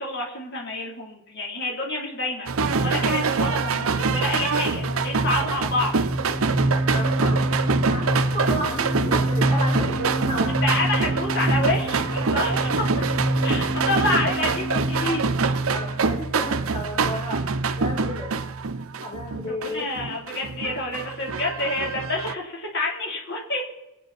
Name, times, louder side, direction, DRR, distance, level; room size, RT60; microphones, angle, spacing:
voice 1, 0.0-5.9 10.6-15.5 19.5-23.6, left 2 dB, 55° left, -1 dB, 3.8 m, -28 dB
sound 1, 2.5-22.3, right 4 dB, 75° right, 0.8 m, -25 dB
sound 2, 4.3-16.5, right 1 dB, 20° right, 0.8 m, -27 dB
voice 2, 6.7-10.5 15.7-18.3 19.0-19.9, equal, 25° left, -3 dB, 2.8 m, -33 dB
24.5 x 9.5 x 4.3 m, 0.94 s
head